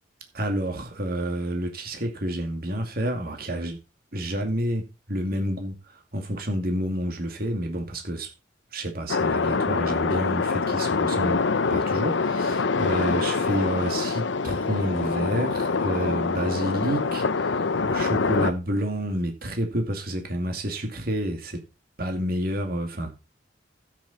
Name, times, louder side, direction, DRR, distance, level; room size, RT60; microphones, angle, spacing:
voice 1, 0.3-3.8 4.1-8.3 8.7-11.4 11.7-21.6 22.0-23.1, right 1 dB, 50° right, 2.4 m, -29 dB
sound 1, 9.1-18.5, left 4 dB, 75° left, 0.7 m, -25 dB
12.5 x 8.7 x 4.2 m
head